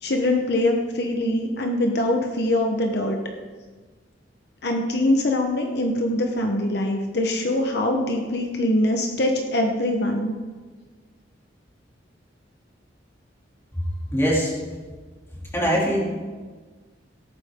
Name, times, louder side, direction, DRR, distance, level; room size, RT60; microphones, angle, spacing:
voice 1, 0.0-3.2 4.6-10.3, left 1 dB, 60° left, 2 dB, 1.1 m, -23 dB
voice 2, 13.7-14.5 15.5-16.0, equal, 15° left, -4 dB, 2.8 m, -22 dB
17.0 x 8.9 x 3.8 m, 1.4 s
head